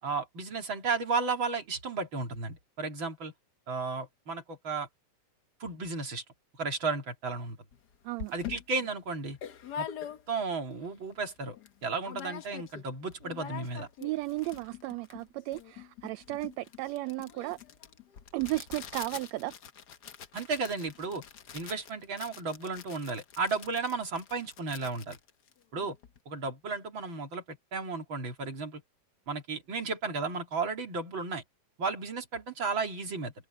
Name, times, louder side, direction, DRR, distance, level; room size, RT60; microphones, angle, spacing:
voice 1, 0.0-3.3 3.7-4.9 5.6-6.2 6.6-7.6 8.3-9.4 9.8-9.9 10.3-11.6 11.8-13.9 20.3-21.2 21.5-25.2 25.7-26.0 26.3-28.8 29.3-31.4 31.8-33.3, right 4 dB, 40° right, 3.9 m, -34 dB
sound 1, 7.7-7.8 8.2-10.6 11.0-11.1 11.3-11.7 12.0-12.9 13.1-26.2, left 9 dB, 65° left, 0.9 m, -44 dB
voice 2, 14.0-17.6 18.3-19.5, right 19 dB, 75° right, 1.7 m, -34 dB
omnidirectional pair, 3.4 m